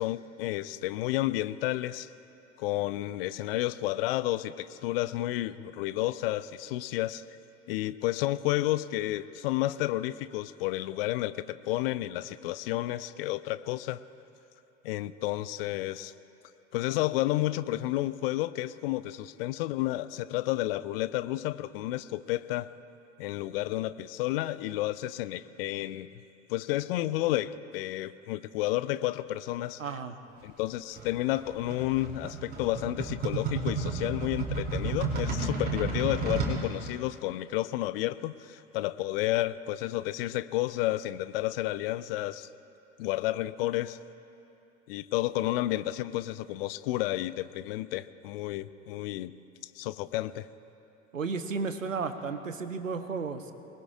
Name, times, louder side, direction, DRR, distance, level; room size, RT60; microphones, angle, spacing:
voice 1, 0.0-2.1 2.6-7.2 7.7-14.0 14.8-16.1 16.7-22.7 23.2-26.1 26.5-29.8 30.4-42.5 43.0-44.0 44.9-49.3 49.8-50.5, left 16 dB, 50° left, 15 dB, 0.6 m, -31 dB
voice 2, 29.8-30.2 51.1-53.5, right 4 dB, 80° right, 9 dB, 1.0 m, -33 dB
sound 1, 30.9-36.6, right 4 dB, 25° right, 4.8 m, -32 dB
26.5 x 20.5 x 2.5 m, 2.8 s
figure-of-eight pair, 80°, 38 cm